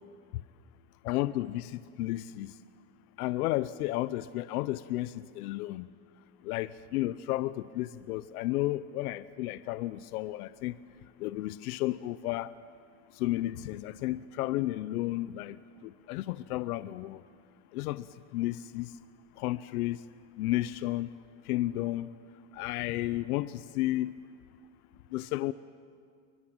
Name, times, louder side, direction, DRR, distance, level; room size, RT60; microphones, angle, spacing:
voice 1, 1.0-2.5 3.2-5.9 6.4-10.7 11.2-12.5 13.2-15.6 15.8-17.2 17.7-18.1 18.3-18.9 19.4-20.0 20.4-21.1 21.5-22.1 22.5-24.1 25.1-25.5, left 16 dB, 75° left, 15 dB, 0.8 m, -32 dB
26.0 x 24.0 x 8.8 m, 2.1 s
supercardioid pair, 175°, 44 cm